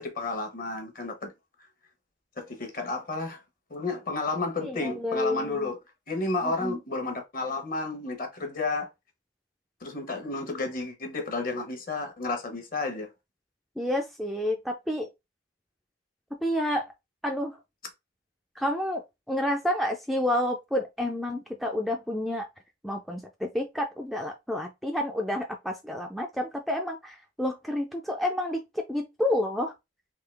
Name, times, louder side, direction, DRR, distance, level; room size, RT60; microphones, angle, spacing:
voice 1, 0.0-1.3 2.4-3.4 3.7-5.8 6.1-8.9 9.8-13.1, left 3 dB, 45° left, 1.0 m, -32 dB
voice 2, 4.6-5.7 6.4-6.8 13.8-15.1 16.4-16.8 17.2-17.6 18.6-22.5 22.8-29.7, left 1 dB, ahead, 0.3 m, -29 dB
3.7 x 2.7 x 3.3 m
head